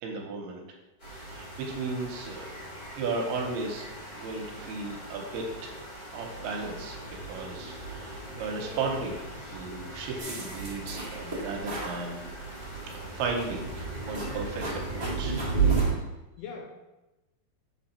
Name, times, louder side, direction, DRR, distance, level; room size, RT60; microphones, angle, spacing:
voice 1, 0.0-0.6 1.2-2.5 2.9-7.0 7.3-12.3 12.8-15.4, right 3 dB, 80° right, 1 dB, 2.6 m, -35 dB
sound 1, 1.0-15.9, right 4 dB, 35° left, 1.5 m, -35 dB
sound 2, 6.3-6.9 8.4-9.1 9.9-10.7 11.2-11.6 12.0-12.4 14.0-14.2, left 1 dB, 55° left, 0.7 m, -48 dB
sound 3, 10.2-12.0 12.5-13.0 13.4-15.8, right 1 dB, 40° right, 1.3 m, -39 dB
voice 2, 16.1-16.7, left 5 dB, 80° left, 1 dB, 2.4 m, -44 dB
7.4 x 3.4 x 4.2 m, 1.0 s
omnidirectional pair, 4.8 m